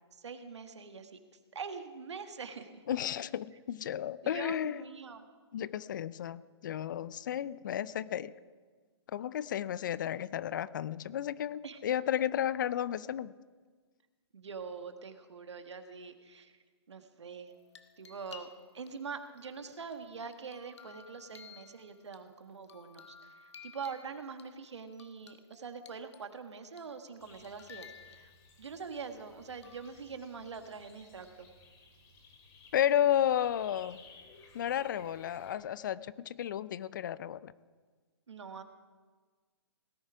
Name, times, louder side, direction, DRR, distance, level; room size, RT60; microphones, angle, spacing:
voice 1, 0.2-1.2 1.5-2.8 4.2-5.3 11.6-11.8 14.3-16.5 16.9-17.5 18.0-18.5 18.7-28.3 28.6-31.5 38.3-38.6, right 5 dB, 80° right, 7 dB, 1.5 m, -44 dB
voice 2, 2.9-4.8 5.5-8.3 9.1-13.3 32.7-34.0 34.5-37.5, left 10 dB, 45° left, 19 dB, 0.4 m, -32 dB
sound 1, 17.5-18.9 19.4-22.2 22.6-24.5 24.9-26.4 26.8-27.1 27.3-28.6 29.6-29.9, left 7 dB, 75° left, 1.4 m, -55 dB
sound 2, 27.2-35.6, left 3 dB, 25° left, 2.5 m, -58 dB
18.0 x 10.5 x 5.0 m, 1.5 s
hypercardioid pair, 150°, 15 cm